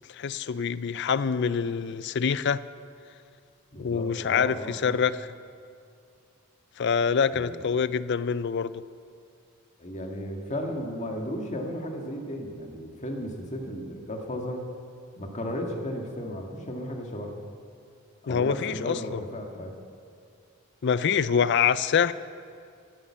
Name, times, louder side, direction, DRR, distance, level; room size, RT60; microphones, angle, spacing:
voice 1, 0.1-2.6 3.8-5.3 6.8-8.8 18.3-19.2 20.8-22.1, left 6 dB, 50° left, 17 dB, 0.4 m, -25 dB
voice 2, 3.7-5.0 7.3-7.8 9.8-14.6 15.1-17.3 18.2-19.7, equal, 35° left, 2 dB, 1.7 m, -35 dB
14.0 x 11.5 x 7.3 m, 2.4 s
head